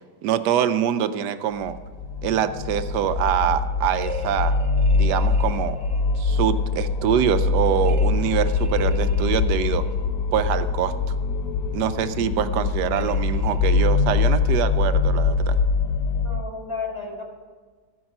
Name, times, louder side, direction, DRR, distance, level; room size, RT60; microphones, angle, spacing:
voice 1, 0.2-1.8 2.2-4.5 4.9-5.8 6.2-9.8 10.3-10.9 11.7-15.6, right 9 dB, 80° right, 11 dB, 1.2 m, -24 dB
sound 1, 1.6-16.4, left 4 dB, 70° left, 0.8 m, -23 dB
sound 2, 3.9-6.2 7.8-9.9 12.9-13.8, right 4 dB, 55° right, 0.9 m, -42 dB
voice 2, 16.1-17.2, left 4 dB, 15° left, -1 dB, 1.7 m, -32 dB
13.5 x 9.4 x 6.0 m, 1.5 s
omnidirectional pair, 1.8 m